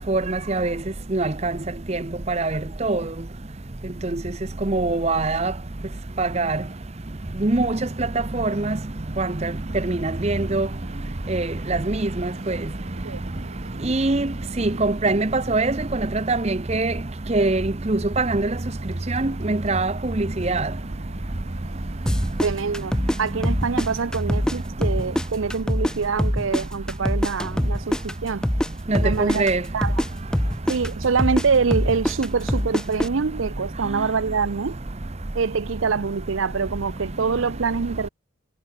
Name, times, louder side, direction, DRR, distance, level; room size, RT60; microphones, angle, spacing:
voice 1, 0.1-0.8 1.1-1.5 1.9-3.0 4.1-4.2 4.6-5.5 6.2-6.6 7.4-8.1 8.3-8.8 9.2-9.5 9.8-10.7 11.3-12.6 13.8-14.3 14.6-16.9 17.3-18.5 19.1-20.7 28.9-29.6, right 2 dB, 30° right, 0.8 m, -23 dB
sound 1, 9.5-16.3 16.6-16.9 17.3-17.4 17.8-24.6, right 1 dB, 90° right, 4.9 m, -42 dB
sound 2, 22.1-24.6 24.8-28.7 28.9-33.1, equal, 5° left, 0.3 m, -23 dB
voice 2, 22.4-28.4 29.0-29.5 29.7-30.0 30.7-34.8 35.3-38.1, right 5 dB, 75° right, 0.6 m, -25 dB
head